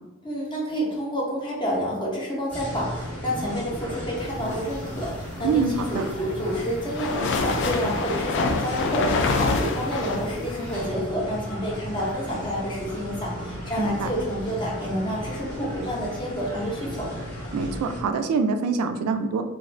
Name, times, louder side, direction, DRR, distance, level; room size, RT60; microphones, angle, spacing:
voice 1, 0.2-17.1, equal, 20° left, -4 dB, 0.8 m, -29 dB
sound 1, 2.5-18.0, equal, 75° left, 1.5 m, -35 dB
voice 2, 5.4-6.1 13.8-14.1 17.5-19.4, right 4 dB, 85° right, 8 dB, 0.3 m, -25 dB
sound 2, 5.7-10.8, left 3 dB, 55° left, 0.3 m, -27 dB
2.5 x 2.4 x 3.2 m, 1.1 s
head